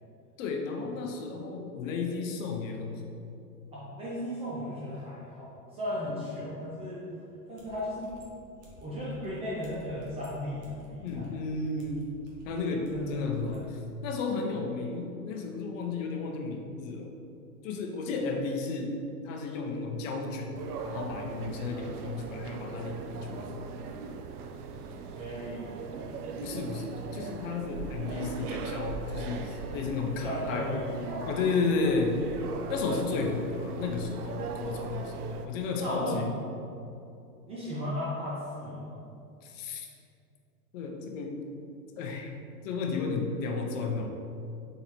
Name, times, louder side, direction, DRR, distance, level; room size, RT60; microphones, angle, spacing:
voice 1, 0.4-3.1 6.1-6.2 11.0-12.0 12.4-17.1 17.6-18.9 19.2-20.5 20.8-23.5 26.4-30.7 31.2-32.2 32.7-36.4 39.4-39.9 40.7-41.4 42.0-42.3 42.6-44.1, left 4 dB, 55° left, 2 dB, 0.7 m, -33 dB
voice 2, 3.7-5.5 5.7-7.0 7.5-8.1 8.8-11.3 12.9-13.7 24.9-26.3 30.2-31.3 34.4-34.5 35.8-36.4 37.5-39.0, left 1 dB, 15° right, -8 dB, 0.4 m, -36 dB
sound 1, 7.5-13.7, left 1 dB, 45° right, 1.3 m, -54 dB
sound 2, 20.5-35.5, right 5 dB, 70° right, 0.5 m, -39 dB
4.2 x 3.7 x 3.0 m, 2.6 s
hypercardioid pair, 110°, 47 cm